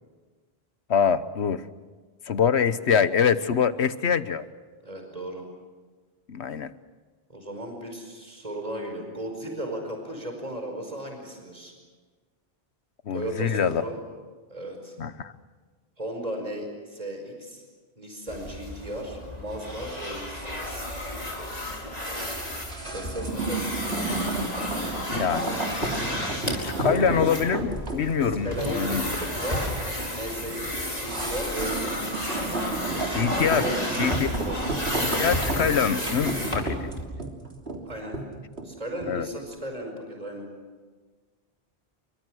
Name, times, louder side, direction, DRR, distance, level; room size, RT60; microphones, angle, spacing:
voice 1, 0.9-1.6 2.2-4.5 6.3-6.7 13.0-13.8 15.0-15.3 25.1-25.5 26.6-29.1 33.1-33.7 34.0-34.3 35.0-36.9 39.1-39.3, left 7 dB, 85° left, 13 dB, 1.3 m, -24 dB
voice 2, 4.8-5.4 7.3-11.7 13.1-14.0 14.5-15.0 16.0-17.6 18.0-20.9 22.8-23.8 28.4-29.7 30.1-34.7 37.8-38.2 38.6-40.5, right 1 dB, 35° right, 3 dB, 5.2 m, -36 dB
sound 1, 18.3-37.0, left 1 dB, 35° left, 4.9 m, -32 dB
sound 2, 22.0-39.2 39.5-39.6, right 2 dB, 75° right, 3.4 m, -32 dB
30.0 x 24.0 x 6.4 m, 1.4 s
omnidirectional pair, 1.1 m